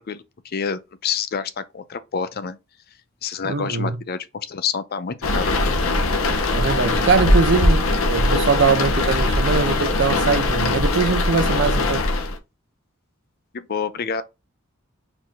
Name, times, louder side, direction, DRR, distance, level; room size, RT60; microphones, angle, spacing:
voice 1, 0.0-2.6 3.2-6.0 13.5-14.2, left 6 dB, 45° left, 0.5 m, -28 dB
voice 2, 3.4-4.0 6.5-12.0, right 4 dB, 55° right, 0.6 m, -22 dB
sound 1, 5.2-12.4, left 2 dB, 75° left, 0.9 m, -20 dB
4.6 x 2.7 x 3.7 m
head